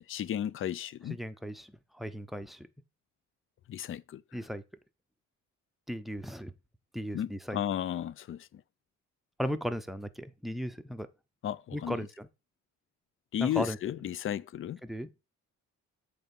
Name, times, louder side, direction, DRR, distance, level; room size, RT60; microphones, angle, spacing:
voice 1, 0.0-1.2 3.7-4.2 7.1-8.5 11.4-12.0 13.3-14.8, left 10 dB, 45° left, 0.5 m, -34 dB
voice 2, 1.1-2.7 4.3-4.6 5.9-6.5 6.9-7.6 9.4-11.1 11.7-12.3 13.4-13.8 14.8-15.1, equal, ahead, 0.7 m, -36 dB
7.8 x 3.6 x 5.4 m
cardioid pair, 90°, 30 cm